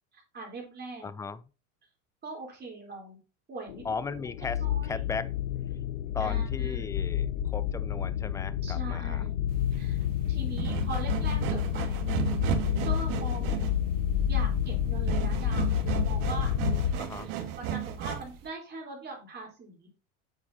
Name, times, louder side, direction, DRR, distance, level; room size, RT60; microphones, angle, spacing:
voice 1, 0.1-1.1 2.2-3.2 3.5-3.8 4.4-5.0 6.2-7.0 8.6-10.0 10.3-12.0 12.8-13.5 14.3-16.5 17.4-19.9, right 3 dB, 25° right, 3.7 m, -41 dB
voice 2, 1.0-1.4 3.8-5.3 6.1-9.3 13.3-13.7 17.0-17.3, left 5 dB, 10° left, 0.3 m, -37 dB
sound 1, 3.7-16.9, left 10 dB, 85° left, 0.9 m, -29 dB
sound 2, 9.5-18.4, right 9 dB, 60° right, 1.7 m, -34 dB
8.7 x 7.6 x 2.8 m
supercardioid pair, 115°, 37 cm